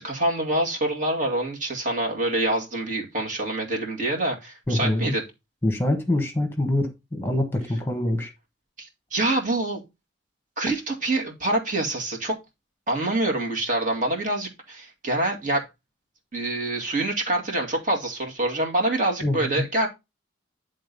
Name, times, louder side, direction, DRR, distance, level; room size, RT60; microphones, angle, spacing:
voice 1, 0.0-5.2 8.8-9.8 10.6-12.4 12.9-15.7 16.3-19.9, right 2 dB, 40° right, 2.2 m, -26 dB
voice 2, 4.7-5.1 5.6-8.3 19.2-19.6, left 1 dB, 10° left, 1.4 m, -25 dB
10.5 x 3.8 x 5.3 m
head